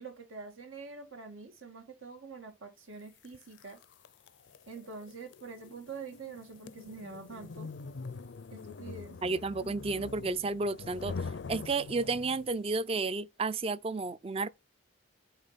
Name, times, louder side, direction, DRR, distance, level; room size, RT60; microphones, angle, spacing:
voice 1, 0.0-3.8 4.7-7.7 8.5-9.2, right 4 dB, 85° right, 2.1 m, -45 dB
sound 1, 3.2-12.6, left 4 dB, 65° left, 0.5 m, -44 dB
voice 2, 9.2-11.2 11.5-14.5, right 3 dB, 30° right, 0.4 m, -32 dB
8.9 x 3.6 x 4.0 m
head